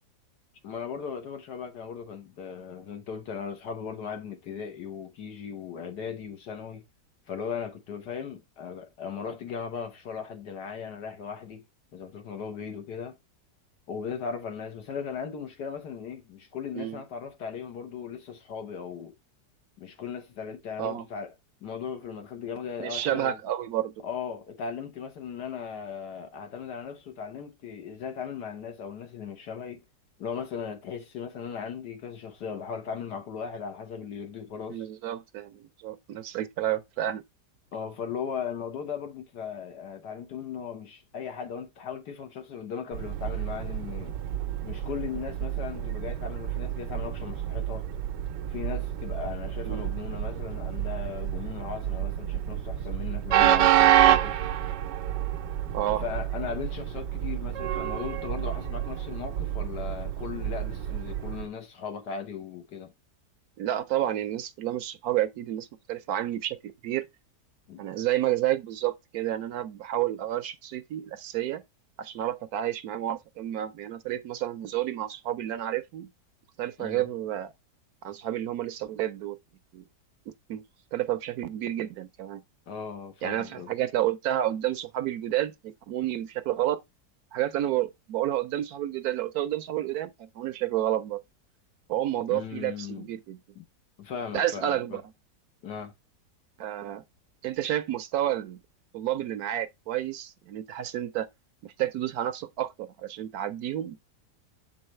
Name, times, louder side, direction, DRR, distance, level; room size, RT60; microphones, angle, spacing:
voice 1, 0.6-6.8 7.3-11.6 11.9-13.2 13.9-19.1 19.8-21.3 21.6-23.4 24.0-29.8 30.2-34.9 37.7-44.2 44.6-47.9 48.5-54.4 55.9-62.9 67.7-67.8 76.8-77.1 82.7-83.7 92.3-93.1 93.6-93.7 94.0-95.0 95.6-95.9, left 7 dB, 75° left, 1.7 m, -37 dB
voice 2, 22.8-23.9 34.7-37.2 49.6-49.9 55.7-56.0 63.6-67.1 67.8-71.6 72.0-76.1 76.6-77.5 78.0-79.4 79.7-79.8 80.5-80.6 80.9-82.4 83.2-86.8 87.3-91.2 91.9-93.4 94.3-95.0 96.6-97.0 97.4-98.6 98.9-101.3 101.6-104.0, right 12 dB, 70° right, 1.0 m, -30 dB
Train, 42.9-61.5, right 12 dB, 90° right, 1.3 m, -28 dB
7.1 x 4.8 x 3.1 m
omnidirectional pair, 1.8 m